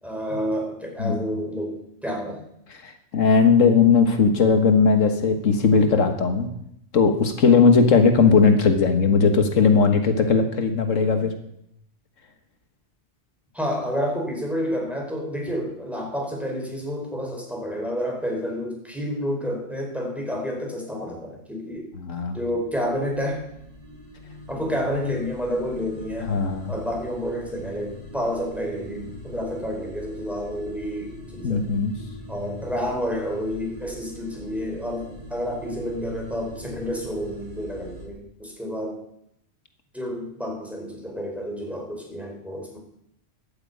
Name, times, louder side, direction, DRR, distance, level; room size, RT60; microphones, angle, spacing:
voice 1, 0.0-2.4 8.4-8.6 13.5-21.9 22.3-23.4 24.5-26.3 26.7-31.7 32.3-39.0 39.9-42.8, equal, ahead, 0 dB, 4.6 m, -29 dB
voice 2, 2.8-6.5 6.9-11.3 22.0-22.4 26.3-26.7 31.4-31.9, left 5 dB, 90° left, 6 dB, 1.8 m, -18 dB
sound 1, 22.5-38.1, right 1 dB, 45° right, 6.8 m, -42 dB
12.0 x 9.8 x 8.5 m, 0.76 s
omnidirectional pair, 1.3 m